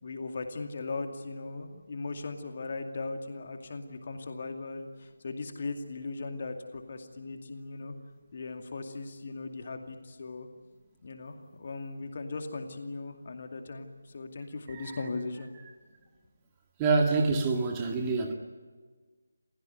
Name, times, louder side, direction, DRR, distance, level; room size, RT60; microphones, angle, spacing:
voice 1, 0.0-7.9 8.3-10.5 11.0-15.5, left 3 dB, 40° left, 5 dB, 2.4 m, -38 dB
voice 2, 16.8-18.3, right 4 dB, 15° right, 2 dB, 2.2 m, -26 dB
29.0 x 16.5 x 9.4 m, 1.4 s
figure-of-eight pair, 155°, 0 cm